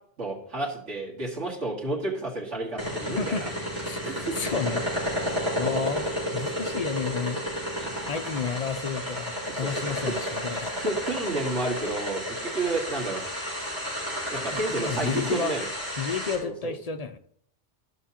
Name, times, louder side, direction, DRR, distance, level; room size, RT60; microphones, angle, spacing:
voice 1, 0.2-3.5 4.0-4.4 7.8-7.9 9.5-10.1 10.8-13.2 14.3-15.7 16.4-16.7, right 2 dB, 90° right, -5 dB, 2.1 m, -31 dB
sound 1, 2.8-16.4, equal, 20° right, 4.3 m, -32 dB
voice 2, 3.1-3.4 3.8-4.0 4.3-5.3 5.6-7.4 8.1-10.7 14.7-15.5 16.0-17.2, left 6 dB, 50° left, 8 dB, 0.4 m, -31 dB
13.5 x 5.7 x 2.9 m, 0.64 s
omnidirectional pair, 1.2 m